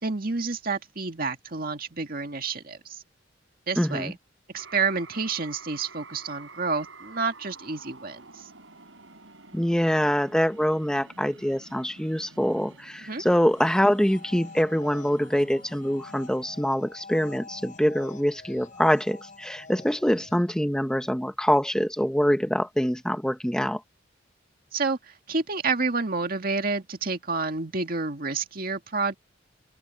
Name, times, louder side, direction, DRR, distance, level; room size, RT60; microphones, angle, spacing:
voice 1, 0.0-3.0 3.7-4.2 4.5-8.3 13.1-13.2 24.7-25.0 25.3-29.2, right 4 dB, 50° right, 2.1 m, -29 dB
voice 2, 3.8-4.1 9.5-23.8, equal, 5° left, 0.8 m, -24 dB
sound 1, 4.6-16.6, right 3 dB, 80° right, 7.7 m, -50 dB
sound 2, 13.2-20.6, left 3 dB, 45° left, 5.2 m, -47 dB
open air
head